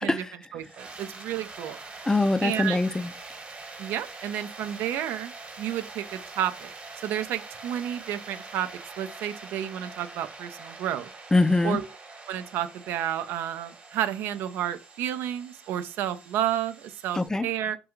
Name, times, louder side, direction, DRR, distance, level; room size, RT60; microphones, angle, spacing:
voice 1, 0.0-0.4 2.1-3.1 11.3-11.8 17.1-17.5, left 2 dB, 15° left, 0.3 m, -23 dB
voice 2, 0.5-1.8 2.4-2.8 3.8-5.3 5.6-6.7 7.0-8.7 9.0-11.1 11.6-11.9 12.3-17.8, right 11 dB, 70° right, 0.3 m, -31 dB
sound 1, 0.6-17.3, right 3 dB, 30° right, 1.1 m, -44 dB
2.3 x 2.3 x 3.0 m
hypercardioid pair, 55°, 4 cm